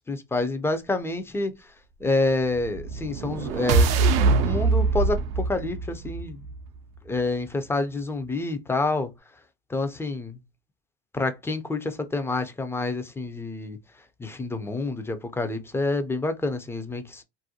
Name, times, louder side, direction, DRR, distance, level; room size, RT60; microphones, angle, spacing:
voice 1, 0.1-1.5 2.0-3.9 4.3-6.4 7.1-9.1 9.7-10.4 11.1-13.8 14.2-17.2, left 2 dB, 10° left, 0.4 m, -28 dB
sound 1, 2.5-6.8, right 4 dB, 75° right, 0.5 m, -23 dB
2.5 x 2.1 x 2.7 m
hypercardioid pair, 85°, 29 cm